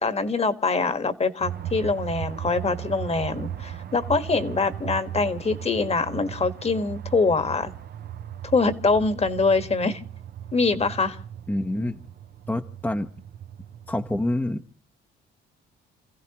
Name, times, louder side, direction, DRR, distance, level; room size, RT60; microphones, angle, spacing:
voice 1, 0.0-7.7 8.5-10.0 10.5-11.2, left 4 dB, 30° left, 10 dB, 1.5 m, -24 dB
sound 1, 1.4-14.3, right 10 dB, 55° right, 0.7 m, -37 dB
voice 2, 11.5-12.0 12.5-13.1 13.9-14.6, left 1 dB, 10° left, 4 dB, 0.9 m, -27 dB
30.0 x 15.5 x 3.0 m, 0.39 s
cardioid pair, 90°, 20 cm